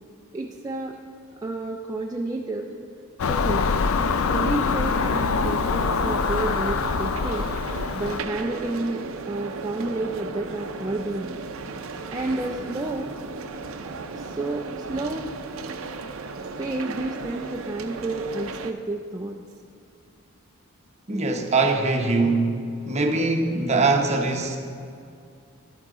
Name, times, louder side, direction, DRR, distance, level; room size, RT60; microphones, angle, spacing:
voice 1, 0.3-1.0 1.4-2.7 3.3-3.7 4.1-7.5 7.9-11.4 12.1-13.1 14.1-15.3 16.6-19.4, right 2 dB, 15° right, 0 dB, 0.4 m, -30 dB
Car passing by / Engine, 3.2-8.2, left 5 dB, 75° left, 0.4 m, -24 dB
sound 1, 4.8-18.7, right 4 dB, 70° right, 0.6 m, -36 dB
voice 2, 21.1-22.6 22.9-24.8, right 3 dB, 35° right, 4 dB, 0.8 m, -22 dB
11.5 x 8.7 x 3.7 m, 2.4 s
head